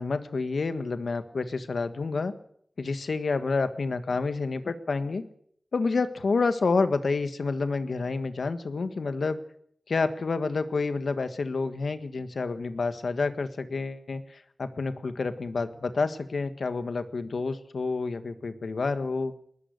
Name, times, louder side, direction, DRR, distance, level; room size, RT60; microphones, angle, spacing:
voice 1, 0.0-2.3 2.8-5.3 5.7-9.4 9.9-19.3, left 4 dB, 90° left, 10 dB, 1.5 m, -29 dB
20.5 x 20.0 x 6.7 m, 0.66 s
wide cardioid pair, 60°, 0 cm